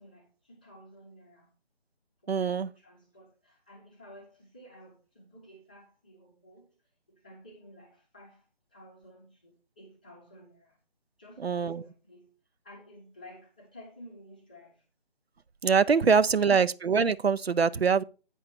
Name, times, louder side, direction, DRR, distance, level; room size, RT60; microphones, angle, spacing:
voice 1, 0.0-1.5 2.2-6.7 7.1-10.8 11.2-12.3 12.6-14.9 16.0-16.5, equal, 10° left, 0.6 m, -53 dB
voice 2, 2.3-2.7 11.4-11.8 15.6-18.0, right 5 dB, 85° right, 0.6 m, -24 dB
8.3 x 5.5 x 4.2 m
figure-of-eight pair, 150°, 30 cm